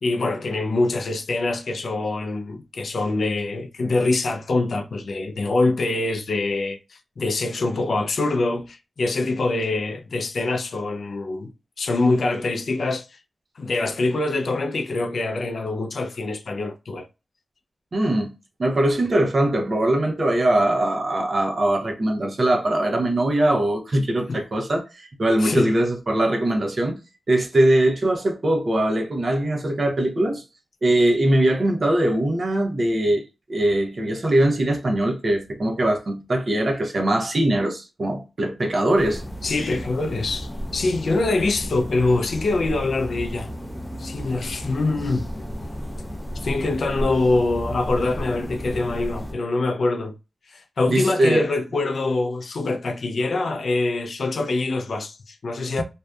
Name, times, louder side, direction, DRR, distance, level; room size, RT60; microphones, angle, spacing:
voice 1, 0.0-11.5 11.8-13.2 13.6-17.1 24.3-24.4 25.4-25.7 39.4-43.5 44.0-45.3 46.3-50.1 50.5-55.8, left 2 dB, 70° left, 0.3 m, -24 dB
voice 2, 17.9-18.3 18.6-27.0 27.3-30.4 30.8-33.2 33.5-39.2 50.9-51.5, right 1 dB, 50° right, 0.6 m, -21 dB
sound 1, 38.9-49.3, equal, 10° left, 0.5 m, -33 dB
2.6 x 2.2 x 2.3 m
wide cardioid pair, 90°, 0 cm